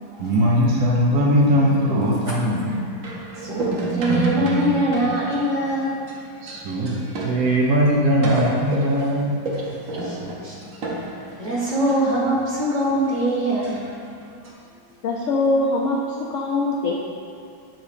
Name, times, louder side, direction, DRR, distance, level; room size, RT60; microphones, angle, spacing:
voice 1, 0.2-2.8 6.4-9.5, equal, 80° right, -3 dB, 1.3 m, -20 dB
sound 1, 1.4-7.6 7.9-8.0 8.2-12.0 12.5-12.6 12.8-12.9 13.6-13.9 14.2-14.5, right 2 dB, 60° right, 1.2 m, -30 dB
voice 2, 3.4-6.0 9.9-10.2 10.4-10.6 11.0-13.9, right 1 dB, 35° right, -6 dB, 1.0 m, -23 dB
voice 3, 15.0-16.9, left 2 dB, 65° left, -2 dB, 0.8 m, -22 dB
7.3 x 2.8 x 4.9 m, 2.7 s
omnidirectional pair, 1.6 m